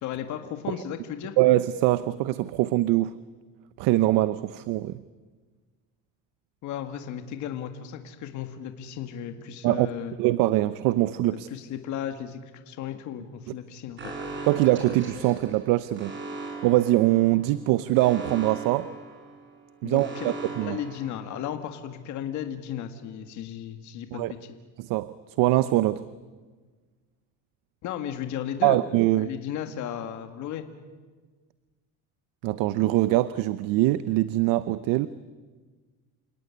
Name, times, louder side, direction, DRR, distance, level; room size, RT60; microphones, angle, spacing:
voice 1, 0.0-1.4 6.6-10.2 11.3-14.1 19.8-20.3 20.6-24.4 27.8-28.8 29.2-30.7, left 10 dB, 50° left, 7 dB, 1.9 m, -35 dB
voice 2, 1.4-3.1 3.8-5.0 9.6-9.9 10.2-11.5 14.4-16.2 16.6-18.9 19.8-20.8 24.1-24.3 24.8-26.0 28.6-29.3 32.4-35.1, right 16 dB, 60° right, 15 dB, 0.8 m, -23 dB
Alarm, 14.0-21.7, right 3 dB, 30° right, 5.9 m, -39 dB
28.5 x 17.5 x 9.8 m, 1.4 s
cardioid pair, 150°, 37 cm